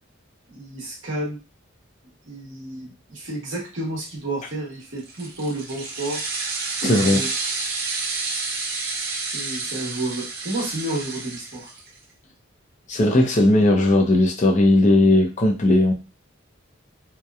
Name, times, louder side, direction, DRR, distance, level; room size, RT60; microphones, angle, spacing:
voice 1, 0.5-1.4 2.2-6.2 7.0-7.3 9.3-11.7, right 1 dB, 65° right, -2 dB, 1.0 m, -31 dB
sound 1, 5.0-12.0, right 3 dB, 45° right, 0.6 m, -30 dB
voice 2, 6.8-7.2 12.9-15.9, left 1 dB, 35° left, 2 dB, 0.5 m, -17 dB
2.8 x 2.1 x 2.4 m, 0.29 s
head